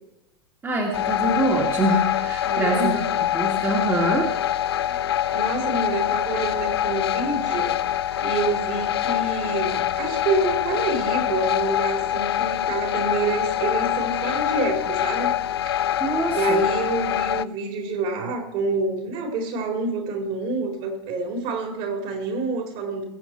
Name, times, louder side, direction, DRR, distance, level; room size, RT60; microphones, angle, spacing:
voice 1, 0.6-3.0 3.3-4.4 16.0-16.6, right 2 dB, 15° right, 0 dB, 2.1 m, -24 dB
sound 1, 0.9-17.4, left 11 dB, 65° left, 0.5 m, -25 dB
voice 2, 2.4-3.1 4.8-5.1 5.3-7.8 8.2-15.3 15.6-15.8 16.3-23.0, right 3 dB, 45° right, 2 dB, 4.0 m, -27 dB
21.0 x 8.1 x 4.6 m, 0.91 s
figure-of-eight pair, 90°, 14 cm